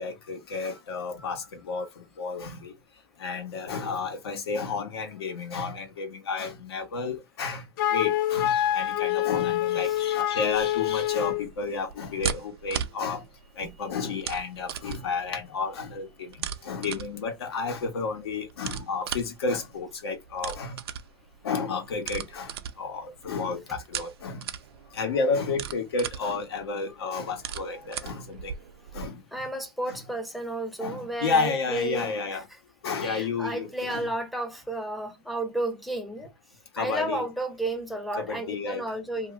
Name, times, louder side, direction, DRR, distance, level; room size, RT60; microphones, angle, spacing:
voice 1, 0.0-1.9 2.2-2.7 3.2-7.6 7.9-13.2 13.6-20.8 21.4-24.5 24.9-28.5 28.9-29.2 29.9-30.0 30.8-32.4 32.8-34.1 36.7-37.2 38.2-38.8, left 4 dB, 75° left, 1.2 m, -31 dB
Wind instrument woodwind instrument, 7.8-11.5, left 12 dB, 55° left, 0.4 m, -26 dB
sound 1, 10.5-29.1, right 8 dB, 70° right, 0.5 m, -39 dB
voice 2, 29.3-32.6 33.0-36.3 36.8-39.3, right 1 dB, ahead, 0.5 m, -32 dB
2.6 x 2.5 x 3.1 m
hypercardioid pair, 140°, 13 cm